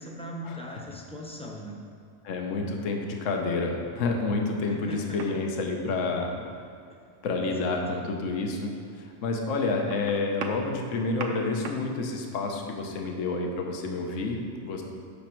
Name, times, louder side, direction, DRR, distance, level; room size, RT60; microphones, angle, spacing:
voice 1, 0.0-1.8 4.7-5.4 6.9-7.0 7.4-8.0, equal, 5° left, -1 dB, 0.7 m, -41 dB
voice 2, 2.2-6.6 7.2-14.8, left 3 dB, 70° left, 2 dB, 1.2 m, -29 dB
sound 1, 5.2-5.4 7.5-7.7 8.3-8.4 9.5-11.9 13.2-13.3, right 4 dB, 70° right, 1.1 m, -38 dB
8.5 x 6.0 x 4.4 m, 2.4 s
omnidirectional pair, 1.4 m